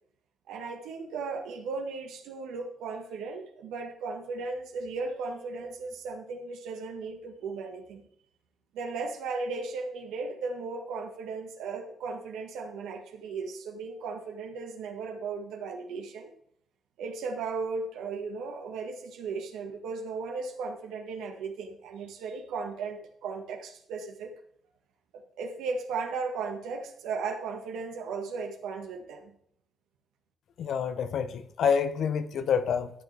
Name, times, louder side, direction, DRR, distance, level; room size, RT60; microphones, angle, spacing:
voice 1, 0.5-8.0 8.7-16.3 17.0-24.3 25.1-29.4, right 4 dB, 90° right, 1.7 m, -36 dB
voice 2, 30.6-32.9, left 7 dB, 65° left, 1.0 m, -27 dB
12.5 x 8.9 x 3.5 m
cardioid pair, 90°, 0 cm